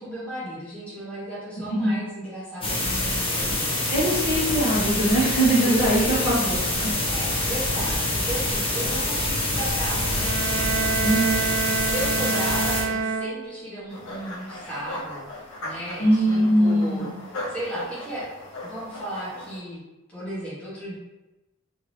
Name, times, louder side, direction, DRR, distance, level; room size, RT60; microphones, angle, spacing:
voice 1, 0.0-3.8 5.6-6.3 7.1-11.3 11.8-17.1 17.5-18.3 18.6-19.8 20.1-21.0, right 1 dB, 5° left, -10 dB, 1.0 m, -35 dB
sound 1, 2.6-12.8, left 1 dB, 25° left, 0.6 m, -26 dB
voice 2, 3.9-6.9 11.0-11.4 16.0-17.1, right 1 dB, 45° left, -7 dB, 1.0 m, -22 dB
sound 2, 10.1-13.9, right 5 dB, 60° right, 0.3 m, -28 dB
sound 3, 13.9-19.6, left 1 dB, 80° left, 0.6 m, -38 dB
2.7 x 2.6 x 3.2 m, 1.0 s
head